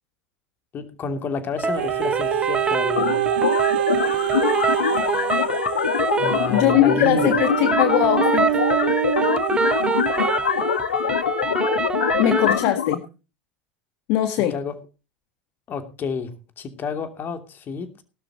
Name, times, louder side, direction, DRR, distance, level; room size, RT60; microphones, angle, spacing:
voice 1, 0.7-3.4 6.2-7.3 14.3-14.8 15.7-18.0, left 5 dB, 35° left, 2.8 m, -30 dB
sound 1, 1.6-12.6, right 3 dB, 15° right, 1.2 m, -26 dB
sound 2, 1.7-10.8 11.5-11.6, right 14 dB, 75° right, 1.1 m, -25 dB
sound 3, 3.0-12.9, left 8 dB, 80° left, 1.2 m, -24 dB
voice 2, 6.5-8.5 12.2-13.0 14.1-14.5, left 13 dB, 55° left, 1.6 m, -20 dB
18.0 x 12.5 x 3.0 m
hypercardioid pair, 80°, 6 cm